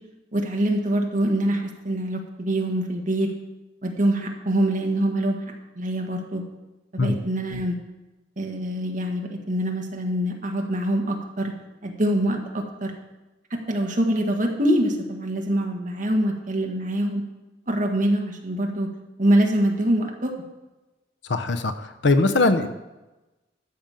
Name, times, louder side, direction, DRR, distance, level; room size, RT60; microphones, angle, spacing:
voice 1, 0.3-3.3 3.8-5.4 5.8-6.4 6.9-7.8 8.4-11.5 11.8-12.9 13.5-17.2 17.7-18.9 19.2-20.3, right 1 dB, 45° right, 2 dB, 1.6 m, -24 dB
voice 2, 21.3-22.7, left 2 dB, 70° left, 8 dB, 0.8 m, -21 dB
13.0 x 5.4 x 7.5 m, 1.1 s
head